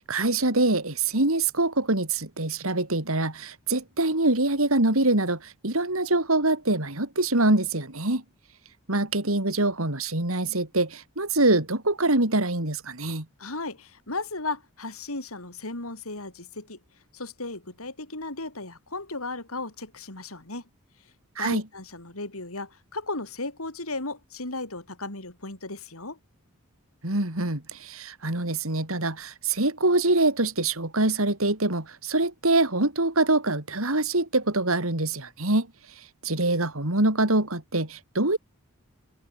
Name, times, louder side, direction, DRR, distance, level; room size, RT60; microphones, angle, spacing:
voice 1, 0.0-8.2 8.9-13.2 21.4-21.6 27.0-35.7 36.2-38.4, right 2 dB, 70° right, 4.0 m, -24 dB
voice 2, 13.4-16.8 17.1-20.6 21.4-26.2, left 2 dB, 75° left, 5.6 m, -35 dB
head